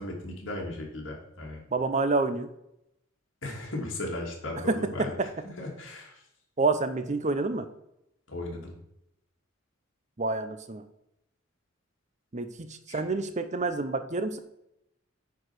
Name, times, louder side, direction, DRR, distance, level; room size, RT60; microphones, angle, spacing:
voice 1, 0.0-1.6 3.4-5.1 5.6-6.2 8.3-8.7 12.9-13.0, left 1 dB, 65° left, -1 dB, 2.8 m, -36 dB
voice 2, 1.7-2.5 4.6-5.3 6.6-7.7 10.2-10.8 12.3-14.4, right 3 dB, 35° right, 10 dB, 0.7 m, -28 dB
9.5 x 4.8 x 6.1 m, 0.81 s
head